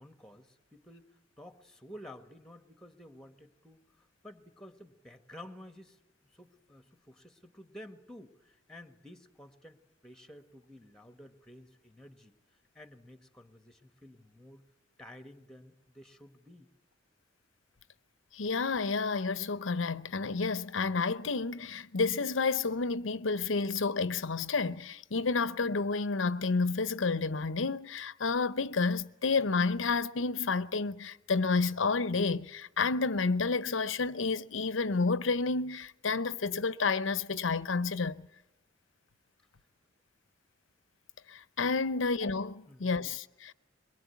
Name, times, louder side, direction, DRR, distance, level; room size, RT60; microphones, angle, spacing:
voice 1, 0.0-6.0 6.3-12.4 12.7-14.6 15.0-16.7 41.9-42.0 42.7-43.1, left 1 dB, 5° left, 1.4 m, -52 dB
voice 2, 18.3-38.2 41.3-43.5, left 4 dB, 80° left, 0.8 m, -30 dB
23.0 x 23.0 x 8.3 m
head